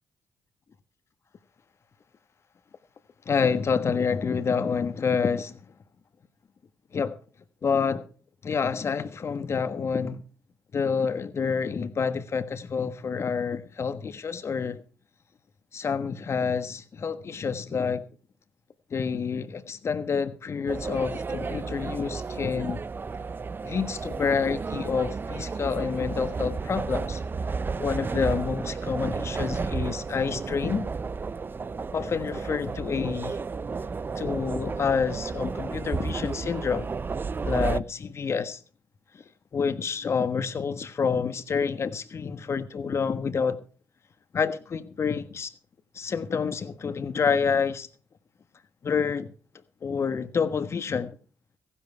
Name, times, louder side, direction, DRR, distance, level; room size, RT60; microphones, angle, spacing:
voice 1, 3.2-5.6 6.9-7.1 7.6-8.0 8.4-10.2 10.7-14.8 15.7-18.1 18.9-22.9 23.6-27.2 27.8-30.9 31.9-33.4 34.2-36.9 37.4-38.6 39.1-39.2 39.5-43.6 44.3-45.5 45.9-47.9 48.8-49.3 49.8-51.2, left 6 dB, 55° left, 1.4 m, -28 dB
sound 1, 20.7-37.8, right 4 dB, 40° right, 0.5 m, -32 dB
15.5 x 10.0 x 4.7 m
hypercardioid pair, 45°, 6 cm